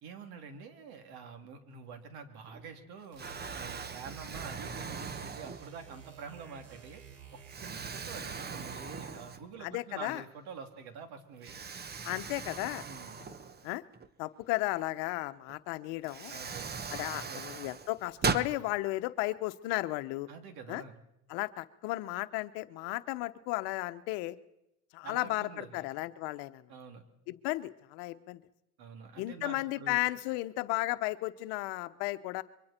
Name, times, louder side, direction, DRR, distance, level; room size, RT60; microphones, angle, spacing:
voice 1, 0.0-3.3 3.6-7.0 7.6-11.6 12.9-13.3 16.3-16.7 17.1-17.4 20.3-21.0 25.0-25.8 26.7-27.0 28.8-30.0, right 5 dB, 55° right, 6 dB, 3.2 m, -47 dB
Explosion, 2.5-2.8 3.2-6.0 6.6-6.8 7.5-9.7 10.1-10.2 11.4-14.1 15.5-15.6 16.0-18.5, right 5 dB, 20° right, 1.1 m, -39 dB
sound 1, 3.1-9.3, right 6 dB, 75° right, 5.6 m, -52 dB
voice 2, 9.6-10.2 12.0-12.8 13.6-13.8 14.2-16.4 16.9-20.3 20.7-20.8 21.3-24.4 24.9-26.6 27.3-28.4 29.2-32.4, left 19 dB, 65° left, 11 dB, 1.1 m, -34 dB
26.5 x 23.5 x 4.5 m, 0.84 s
supercardioid pair, 110°, 44 cm